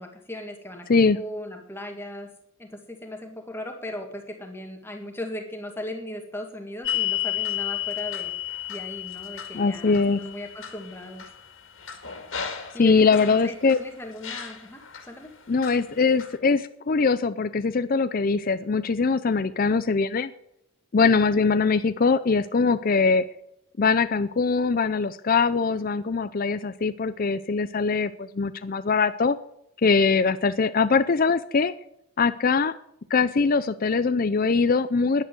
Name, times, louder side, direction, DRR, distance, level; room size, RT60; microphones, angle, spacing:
voice 1, 0.0-2.3 2.6-11.2 12.7-13.0 13.3-15.3, left 1 dB, 10° left, 4 dB, 1.9 m, -37 dB
sound 1, 6.8-13.8 14.2-15.1 15.6-16.4, left 11 dB, 60° left, 2.2 m, -33 dB
voice 2, 9.5-10.2 12.8-13.8 15.5-20.3 20.9-23.3 23.8-29.4 29.8-31.7 32.2-32.7 33.1-35.2, left 4 dB, 40° left, 12 dB, 0.4 m, -22 dB
10.5 x 10.0 x 7.7 m, 0.76 s
head